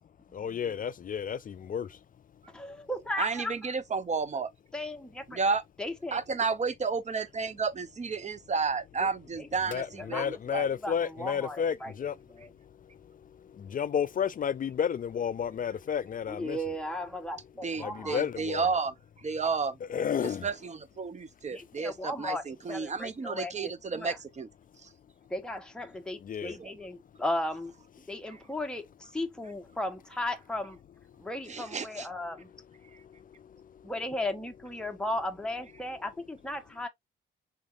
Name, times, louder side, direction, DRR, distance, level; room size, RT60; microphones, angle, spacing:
voice 1, 0.3-1.9 9.7-12.1 13.6-16.6 17.8-18.6 19.8-20.5 26.2-26.5, left 8 dB, 40° left, 0.4 m, -31 dB
voice 2, 2.5-3.5 4.7-5.4 5.8-6.2 9.0-9.1 9.4-12.5 16.3-18.2 21.5-24.2 25.3-30.8 31.2-32.5 33.8-36.9, left 1 dB, 5° left, 1.0 m, -36 dB
voice 3, 3.2-4.5 5.3-5.6 6.1-10.7 17.6-18.9 19.2-19.7 20.4-24.5 26.6-26.7 31.5-32.1, right 4 dB, 35° right, 0.7 m, -32 dB
5.6 x 3.5 x 2.5 m
cardioid pair, 90°, 21 cm